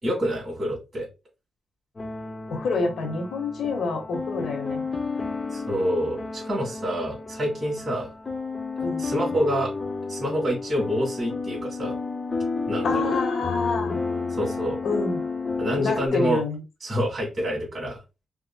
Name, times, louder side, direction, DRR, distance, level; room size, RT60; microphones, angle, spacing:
voice 1, 0.0-1.1 5.5-8.1 9.0-9.7 10.1-11.9 12.7-13.0 14.3-14.8 15.6-16.4 16.8-18.0, equal, 35° right, -3 dB, 2.8 m, -27 dB
sound 1, 2.0-16.1, left 4 dB, 30° left, 0.7 m, -31 dB
voice 2, 2.5-4.8 8.8-9.0 12.8-14.0 14.8-15.2 15.8-16.6, left 3 dB, 75° left, 2 dB, 1.6 m, -27 dB
4.9 x 3.5 x 2.4 m, 0.27 s
cardioid pair, 90°, 0 cm